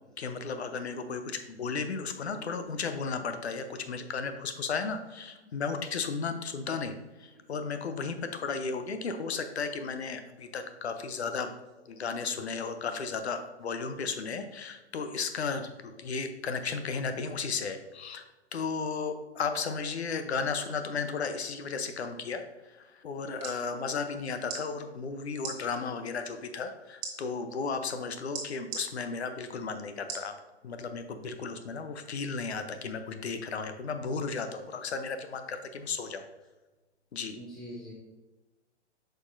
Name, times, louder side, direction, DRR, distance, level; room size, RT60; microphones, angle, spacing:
voice 1, 0.2-6.9 7.2-11.5 11.9-18.2 18.5-30.3 30.6-36.2 37.1-37.4, left 5 dB, 65° left, 8 dB, 0.8 m, -34 dB
voice 2, 19.1-19.6 24.7-24.8 25.1-25.3 25.8-26.0 26.3-26.5 27.8-28.0 32.8-32.9 34.6-34.7 37.3-37.9, equal, ahead, -5 dB, 0.4 m, -50 dB
sound 1, 23.1-23.6 24.4-24.6 25.4-25.6 27.0-27.1 28.3-28.8 30.1-30.3 30.9-31.0, right 5 dB, 30° right, 1.3 m, -37 dB
8.0 x 5.3 x 2.6 m, 1.1 s
figure-of-eight pair, 120°, 35 cm